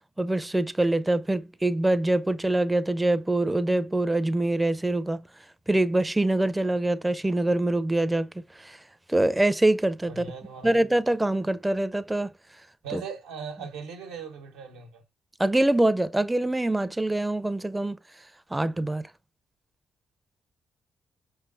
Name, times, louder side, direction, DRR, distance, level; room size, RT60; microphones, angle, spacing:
voice 1, 0.2-5.2 5.7-8.3 8.6-8.8 9.1-10.3 10.6-12.3 12.9-13.0 15.4-18.0 18.5-19.1, right 1 dB, 15° right, 0.5 m, -24 dB
voice 2, 10.1-10.8 12.8-15.0, right 6 dB, 85° right, 1.0 m, -39 dB
5.2 x 3.3 x 2.5 m
hypercardioid pair, 45°, 0 cm